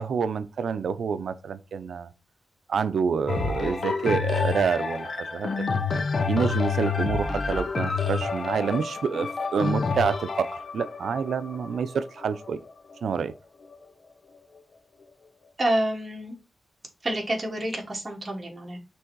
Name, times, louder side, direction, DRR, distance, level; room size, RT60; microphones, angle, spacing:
voice 1, 0.0-2.1 2.7-5.5 6.3-12.6 13.0-13.3, right 6 dB, 85° right, 0.6 m, -27 dB
sound 1, 3.3-13.1 13.7-13.8, left 5 dB, 55° left, 0.9 m, -28 dB
voice 2, 15.6-16.3 17.0-18.8, right 1 dB, 30° right, 2.9 m, -28 dB
6.2 x 3.6 x 4.6 m
wide cardioid pair, 90°, 0 cm